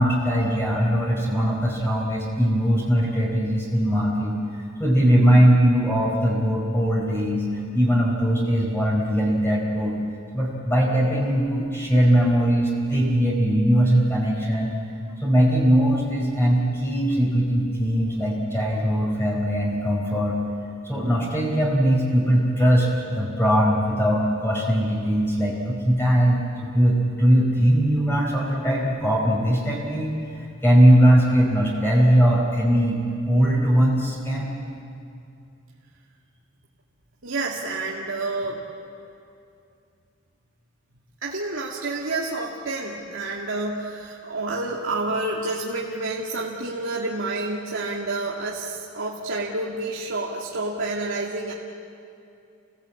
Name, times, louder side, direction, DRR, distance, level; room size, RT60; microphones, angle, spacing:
voice 1, 0.0-9.9 10.3-14.7 15.2-20.4 20.8-34.5, equal, 10° left, -3 dB, 4.5 m, -20 dB
voice 2, 37.2-38.6 41.2-51.5, right 2 dB, 70° right, -4 dB, 2.3 m, -29 dB
29.5 x 18.0 x 8.5 m, 2.6 s
head